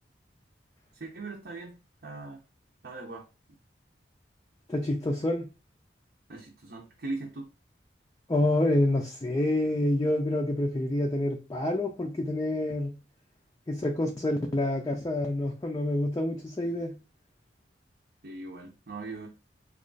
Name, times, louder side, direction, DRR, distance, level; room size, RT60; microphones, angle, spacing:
voice 1, 0.9-1.8 2.0-2.4 2.8-3.3 6.3-7.5 18.2-19.3, right 3 dB, 60° right, -1 dB, 0.7 m, -39 dB
voice 2, 4.7-5.5 8.3-12.9 13.7-17.0, left 1 dB, 20° left, 0 dB, 0.4 m, -27 dB
3.0 x 2.4 x 3.8 m, 0.31 s
head